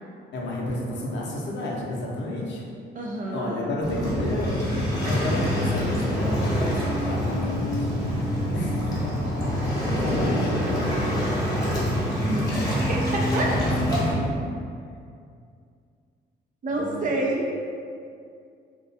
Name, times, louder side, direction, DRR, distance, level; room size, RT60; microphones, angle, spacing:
voice 1, 0.3-2.6 3.3-7.9 8.5-8.9 9.8-10.5 13.6-14.2 16.7-17.0, left 1 dB, 65° left, -3 dB, 0.6 m, -31 dB
voice 2, 2.9-3.6 12.3-13.5 13.9-14.0 16.6-17.7, right 2 dB, 40° right, -2 dB, 0.5 m, -28 dB
Waves surf, 3.8-14.1, equal, 15° left, 0.8 m, -25 dB
2.4 x 2.2 x 2.5 m, 2.3 s
cardioid pair, 90°, 20 cm